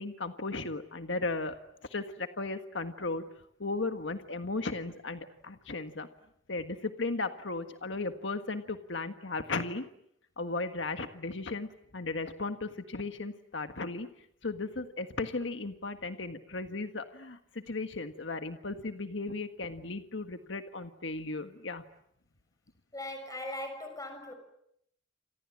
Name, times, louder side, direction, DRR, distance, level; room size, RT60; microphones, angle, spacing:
voice 1, 0.0-1.6 1.9-3.2 3.6-6.1 6.5-9.8 10.4-14.1 14.4-21.8, left 3 dB, 70° left, 8 dB, 1.6 m, -36 dB
voice 2, 22.9-24.3, left 1 dB, 20° left, 7 dB, 6.6 m, -39 dB
29.0 x 27.0 x 7.4 m, 0.75 s
head